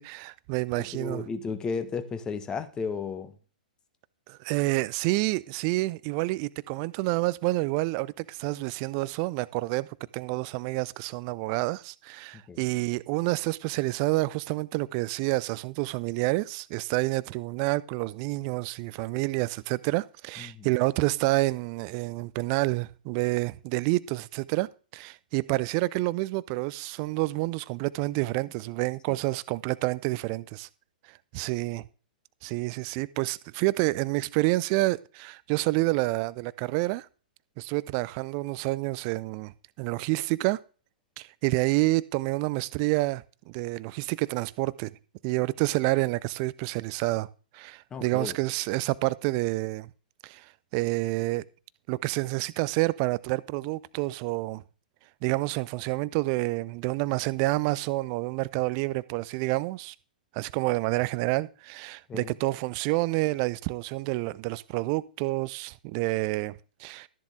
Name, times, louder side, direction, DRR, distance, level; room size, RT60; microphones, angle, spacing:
voice 1, 0.0-1.2 4.3-9.9 10.1-24.7 24.9-30.7 31.3-31.8 32.4-37.1 37.6-39.5 39.8-40.6 41.2-44.9 45.2-47.3 47.5-49.9 50.2-50.4 50.7-51.4 51.9-54.6 55.2-59.9 60.3-67.1, right 21 dB, 35° right, 0.6 m, -28 dB
voice 2, 0.7-3.3 12.5-12.6 20.4-20.7 29.1-29.2 47.9-48.4 62.1-62.4, left 5 dB, 15° left, 1.4 m, -34 dB
13.0 x 10.5 x 3.8 m
figure-of-eight pair, 110°, 5 cm